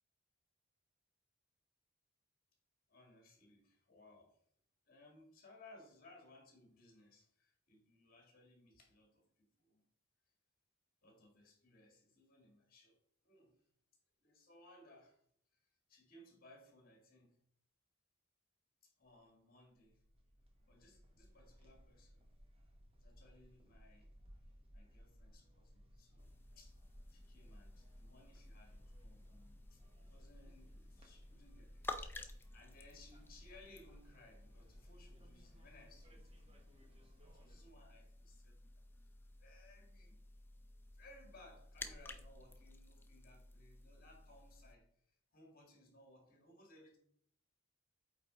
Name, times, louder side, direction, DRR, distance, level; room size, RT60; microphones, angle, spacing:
voice 1, 2.9-4.4 4.9-9.9 11.0-13.0 13.2-13.6 14.2-15.2 15.5-17.4 18.8-20.0 20.7-22.3 22.9-24.1 24.7-26.8 27.1-29.8 30.1-32.2 32.5-38.8 39.4-40.2 40.9-47.0, left 2 dB, 40° left, 3 dB, 1.7 m, -63 dB
sound 1, 19.0-19.2 19.7-37.7, equal, 25° right, 1.0 m, -62 dB
sound 2, 26.2-44.8, left 2 dB, 10° left, 0.3 m, -54 dB
8.5 x 3.9 x 3.7 m, 0.65 s
head